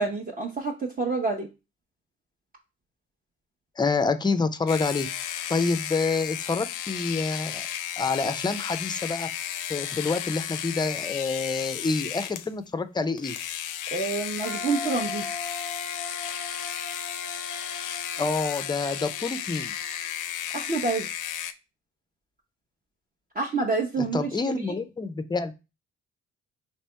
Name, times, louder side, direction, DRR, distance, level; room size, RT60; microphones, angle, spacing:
voice 1, 0.0-1.5 13.9-15.2 20.5-21.1 23.4-24.3, right 3 dB, 30° right, 0 dB, 0.7 m, -27 dB
voice 2, 3.8-5.1 5.5-7.6 8.0-9.3 9.7-13.4 18.2-19.7 24.0-25.5, left 4 dB, 15° left, 11 dB, 0.4 m, -27 dB
sound 1, 4.7-12.5 13.2-21.5, left 10 dB, 85° left, 0.5 m, -34 dB
sound 2, 14.4-20.3, left 2 dB, ahead, 0.9 m, -39 dB
3.3 x 2.9 x 4.3 m, 0.29 s
cardioid pair, 90°, 30 cm